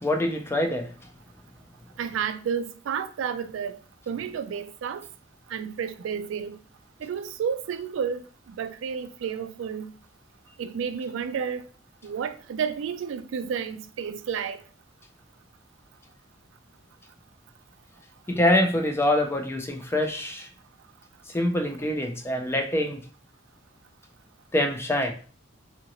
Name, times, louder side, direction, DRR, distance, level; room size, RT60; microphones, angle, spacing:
voice 1, 0.0-0.9 18.3-20.5 21.3-23.0 24.5-25.1, left 1 dB, 15° left, 0.3 m, -25 dB
voice 2, 2.0-3.7 4.1-5.1 5.5-6.6 7.0-9.9 10.6-11.6 12.0-14.6, right 7 dB, 75° right, 0.3 m, -31 dB
2.8 x 2.6 x 2.8 m
head